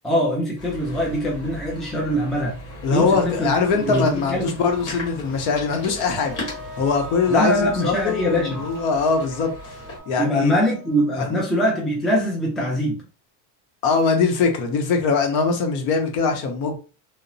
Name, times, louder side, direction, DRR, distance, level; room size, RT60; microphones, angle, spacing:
voice 1, 0.0-2.5 2.9-3.5 3.9-4.5 7.3-8.6 10.2-13.0, equal, ahead, 0.4 m, -22 dB
sound 1, 0.6-10.0, left 1 dB, 45° left, 1.4 m, -38 dB
voice 2, 2.8-6.4 6.8-9.5 10.1-10.5 11.1-11.4 13.8-16.8, left 4 dB, 60° left, 0.8 m, -22 dB
sound 2, 6.1-12.2, right 1 dB, 35° right, 0.6 m, -40 dB
2.8 x 2.0 x 2.6 m
cardioid pair, 165°, 33 cm